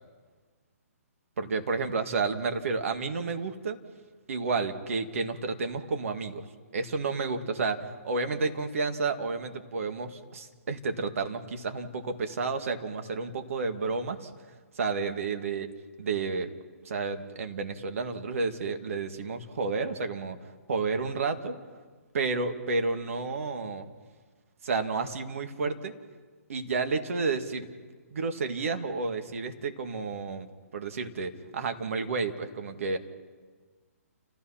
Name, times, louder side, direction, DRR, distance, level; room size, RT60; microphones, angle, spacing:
voice 1, 1.4-3.8 4.3-6.4 6.7-14.3 14.8-15.7 16.0-16.5 16.8-20.4 20.7-21.6 22.1-23.9 24.6-25.9 26.5-27.7 28.1-30.5 30.7-33.0, right 4 dB, 60° right, 6 dB, 2.2 m, -31 dB
30.0 x 15.0 x 5.9 m, 1.4 s
figure-of-eight pair, 135°, 8 cm